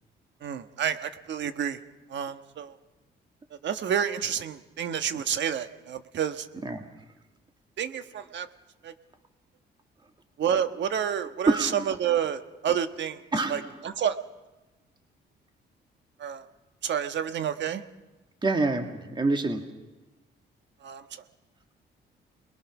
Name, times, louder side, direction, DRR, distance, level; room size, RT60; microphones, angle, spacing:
voice 1, 0.4-1.8 2.1-2.7 3.6-6.5 7.8-8.5 8.8-8.9 10.4-13.2 13.5-14.2 16.2-16.4 16.8-17.8 20.8-21.2, right 8 dB, 65° right, 9 dB, 1.3 m, -29 dB
voice 2, 6.6-7.0 11.5-11.9 13.3-13.8 18.4-19.8, right 3 dB, 25° right, 5 dB, 1.8 m, -27 dB
29.0 x 21.0 x 6.0 m, 1.1 s
cardioid pair, 90°, 20 cm